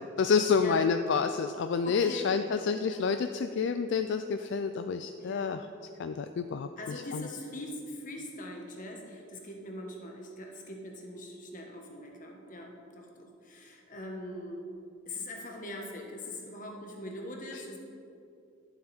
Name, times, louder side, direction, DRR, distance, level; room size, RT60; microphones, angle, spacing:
voice 1, 0.0-5.7 6.0-7.3, left 5 dB, 65° left, 8 dB, 0.3 m, -29 dB
voice 2, 0.5-0.9 1.8-3.0 5.2-5.6 6.8-14.7 15.1-17.8, left 1 dB, 45° left, 1 dB, 1.4 m, -42 dB
11.0 x 7.5 x 4.3 m, 2.7 s
head